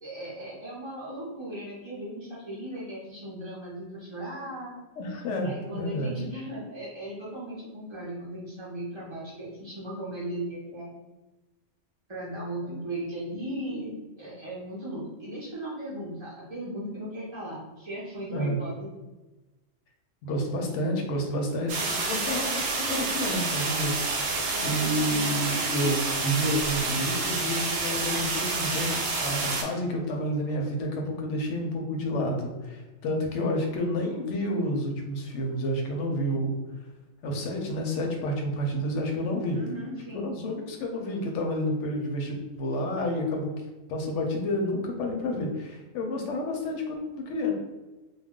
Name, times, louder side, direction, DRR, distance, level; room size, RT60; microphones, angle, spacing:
voice 1, 0.0-4.7 5.4-10.9 12.1-18.9 24.5-25.3 39.5-40.3, right 1 dB, 40° right, -8 dB, 0.4 m, -37 dB
voice 2, 5.0-6.1 18.3-18.6 20.2-36.6 37.2-39.6 40.1-47.5, equal, 70° left, 2 dB, 0.9 m, -30 dB
sound 1, 21.7-29.6, right 3 dB, 70° right, 0.9 m, -29 dB
2.3 x 2.1 x 3.6 m, 1.1 s
omnidirectional pair, 1.3 m